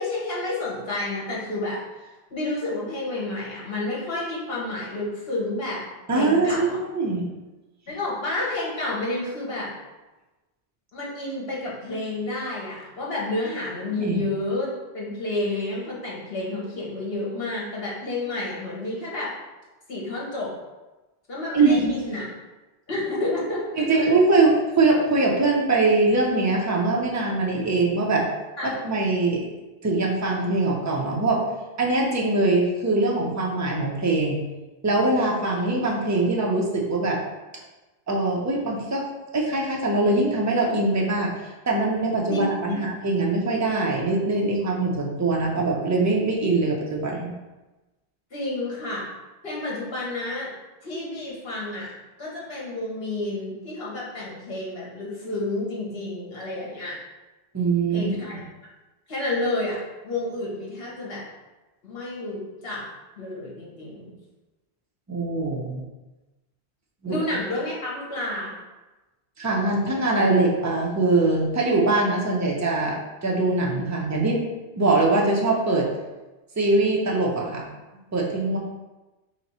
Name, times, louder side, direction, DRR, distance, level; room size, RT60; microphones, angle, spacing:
voice 1, 0.0-5.8 6.1-6.8 7.9-9.7 10.9-14.7 14.9-19.3 19.9-20.5 21.3-22.3 22.9-24.1 28.6-28.7 42.3-42.8 48.3-49.0 49.4-50.5 50.8-51.9 52.2-56.9 57.9-58.4 59.1-61.2 61.8-62.8 63.2-64.1 67.1-68.5, left 2 dB, 65° left, -5 dB, 1.4 m, -30 dB
voice 2, 6.1-7.2 14.0-14.2 21.5-22.0 23.8-28.3 28.6-29.5 29.8-31.4 31.8-34.4 34.8-37.2 38.1-39.1 39.3-41.3 41.7-47.3 57.5-58.1 65.1-65.8 67.0-67.2 69.4-74.4 74.8-75.9 76.6-77.7 78.1-78.6, right 2 dB, 20° right, -2 dB, 0.4 m, -22 dB
3.4 x 3.0 x 4.1 m, 1.1 s
omnidirectional pair, 1.1 m